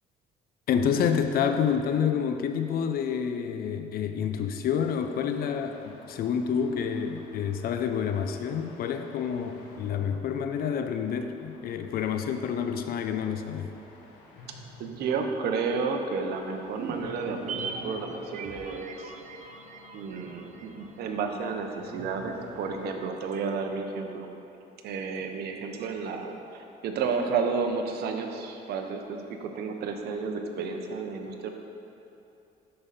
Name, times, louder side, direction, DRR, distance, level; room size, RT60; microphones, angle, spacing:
voice 1, 0.7-13.7, left 7 dB, 60° left, 7 dB, 0.6 m, -28 dB
sound 1, 4.8-22.9, left 3 dB, 90° left, 1.4 m, -51 dB
voice 2, 14.8-19.1 19.9-24.3 24.8-31.5, right 5 dB, 70° right, 4 dB, 1.0 m, -32 dB
sound 2, 16.7-21.2 21.5-21.6, right 4 dB, 45° right, 0.7 m, -40 dB
12.5 x 5.4 x 4.2 m, 2.8 s
cardioid pair, 110°, 17 cm